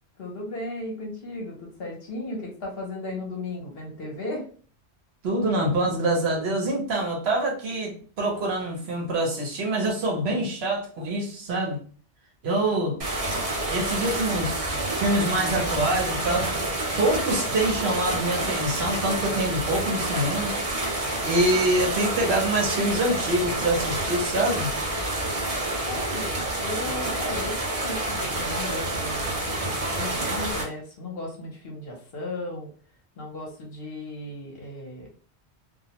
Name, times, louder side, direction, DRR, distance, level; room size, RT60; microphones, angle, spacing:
voice 1, 0.2-4.5 25.9-32.7 33.2-35.1, left 2 dB, 60° left, 0 dB, 0.9 m, -35 dB
voice 2, 5.2-11.8 12.4-13.0 13.7-16.7 17.0-20.5 21.2-24.7, right 1 dB, 65° right, 0 dB, 1.0 m, -25 dB
sound 1, 13.0-30.6, right 2 dB, 40° right, 0.7 m, -28 dB
2.4 x 2.1 x 2.8 m, 0.43 s
omnidirectional pair, 1.2 m